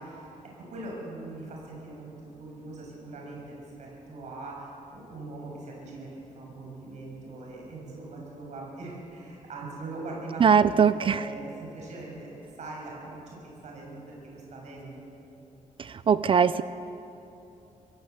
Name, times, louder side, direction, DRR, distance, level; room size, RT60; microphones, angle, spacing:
voice 1, 0.0-10.5 10.9-15.0, right 2 dB, 60° right, -2 dB, 7.1 m, -41 dB
voice 2, 10.4-11.3 15.8-16.6, right 7 dB, 40° right, 14 dB, 0.5 m, -21 dB
24.0 x 17.5 x 8.2 m, 3.0 s
wide cardioid pair, 160°, 14 cm